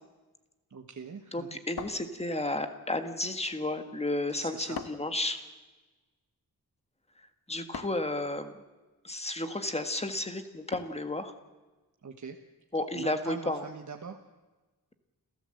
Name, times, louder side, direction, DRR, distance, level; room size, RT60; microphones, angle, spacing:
voice 1, 0.7-1.6 4.4-4.8 12.0-12.4 12.9-14.2, right 5 dB, 50° right, 4 dB, 1.3 m, -42 dB
voice 2, 1.3-5.4 7.5-8.5 9.0-11.3 12.7-13.6, left 1 dB, 15° left, 7 dB, 1.6 m, -32 dB
sound 1, 1.8-2.7 4.7-5.2 7.7-8.1 10.7-11.2, left 6 dB, 80° left, 1.4 m, -41 dB
29.5 x 13.5 x 7.8 m, 1.2 s
wide cardioid pair, 175°, 37 cm